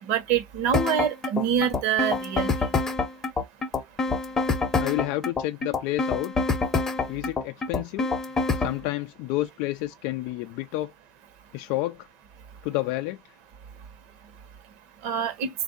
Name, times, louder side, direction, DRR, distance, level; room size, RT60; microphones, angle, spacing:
voice 1, 0.1-2.5 15.0-15.5, right 8 dB, 60° right, 1.1 m, -25 dB
sound 1, 0.7-8.8, left 3 dB, 15° left, 0.8 m, -26 dB
voice 2, 4.8-6.3 7.1-8.1 8.6-10.9 11.5-12.1 12.6-13.2, left 17 dB, 65° left, 0.3 m, -30 dB
3.5 x 2.6 x 3.9 m
cardioid pair, 150°, 2 cm